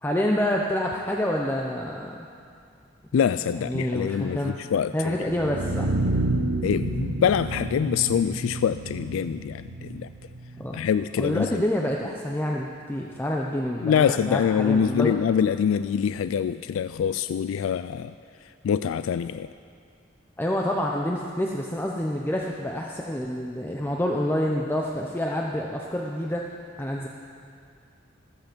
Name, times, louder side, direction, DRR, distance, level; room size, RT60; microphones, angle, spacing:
voice 1, 0.0-2.2 3.5-4.5 4.9-5.9 10.6-10.8 11.2-15.1 20.4-26.4 26.8-27.1, left 1 dB, 10° left, -1 dB, 0.7 m, -27 dB
voice 2, 3.1-5.3 6.6-10.1 10.7-11.6 13.8-18.1 18.6-19.5, left 7 dB, 85° left, 13 dB, 0.3 m, -25 dB
sound 1, 5.2-11.2, right 2 dB, 80° right, 1.0 m, -29 dB
15.0 x 14.0 x 5.2 m, 2.4 s
head